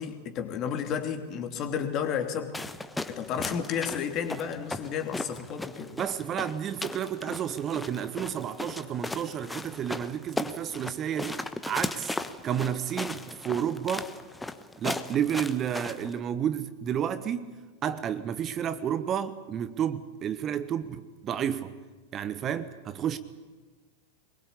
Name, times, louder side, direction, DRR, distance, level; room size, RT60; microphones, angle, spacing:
voice 1, 0.0-2.6 3.1-5.9, left 7 dB, 35° left, 6 dB, 2.9 m, -32 dB
sound 1, 2.5-16.2, left 2 dB, 5° left, 1.2 m, -37 dB
voice 2, 5.9-11.4 11.7-12.2 12.4-14.1 14.8-17.5 17.8-21.7 22.1-23.2, right 9 dB, 30° right, 13 dB, 1.1 m, -31 dB
24.5 x 21.5 x 8.5 m, 1.3 s
figure-of-eight pair, 90°, 0 cm